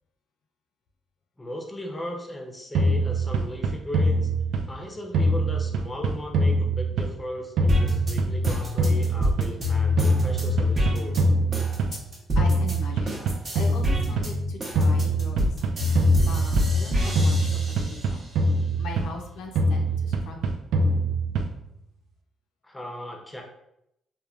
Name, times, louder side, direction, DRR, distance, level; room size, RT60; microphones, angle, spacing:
voice 1, 1.4-4.3 4.7-11.2 22.6-23.4, left 1 dB, 15° left, 1 dB, 0.5 m, -37 dB
sound 1, 2.7-4.8 5.1-7.3 7.6-9.7 10.0-12.1 12.4-14.3 14.7-16.9 17.1-19.2 19.5-21.7, right 1 dB, 75° right, 0.3 m, -24 dB
sound 2, 7.7-12.8 13.1-18.3 18.7-19.7, left 2 dB, 40° right, 0.8 m, -26 dB
voice 2, 12.4-13.2 13.5-18.3 18.8-20.4, left 3 dB, 85° left, 2 dB, 0.4 m, -39 dB
3.0 x 2.2 x 2.3 m, 0.80 s
cardioid pair, 90°, 0 cm